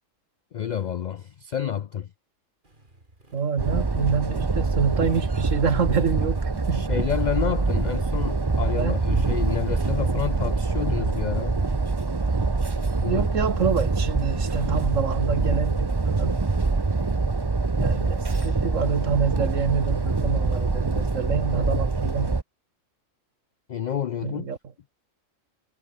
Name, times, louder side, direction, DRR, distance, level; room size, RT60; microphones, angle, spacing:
voice 1, 0.5-2.1 6.7-11.6 13.0-13.2 23.7-24.5, left 9 dB, 70° left, 0.4 m, -29 dB
Motorcycle, 2.6-18.4, right 2 dB, 40° right, 4.6 m, -57 dB
voice 2, 3.3-6.9 8.8-9.3 13.0-16.4 17.8-22.3 24.2-24.6, right 6 dB, 80° right, 1.9 m, -27 dB
sound 1, 3.6-22.4, right 3 dB, 20° right, 0.8 m, -25 dB
omnidirectional pair, 1.3 m